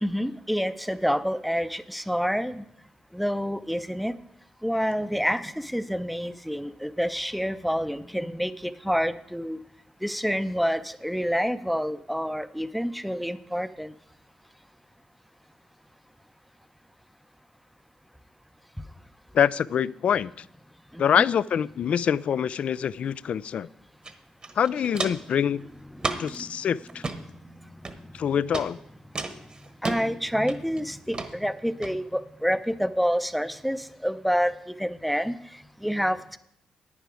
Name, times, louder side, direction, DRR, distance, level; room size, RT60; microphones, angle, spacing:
voice 1, 0.0-2.6 3.1-4.1 4.6-9.6 10.0-13.9 20.9-21.2 26.0-26.4 29.8-34.5 34.8-35.4 35.8-36.4, equal, ahead, 12 dB, 0.6 m, -28 dB
voice 2, 19.3-20.3 21.0-23.7 24.6-25.7 26.2-27.0 28.1-28.8, left 8 dB, 65° left, 20 dB, 0.3 m, -25 dB
Walk footsteps, 24.0-24.1 24.4-25.3 26.0-26.4 26.9-27.2 27.8-28.2 28.5-28.7 29.2-30.0 30.5-30.8 31.1-31.3 31.8-31.9, right 3 dB, 40° right, 1.2 m, -32 dB
10.5 x 9.5 x 4.8 m, 0.75 s
cardioid pair, 65°, 2 cm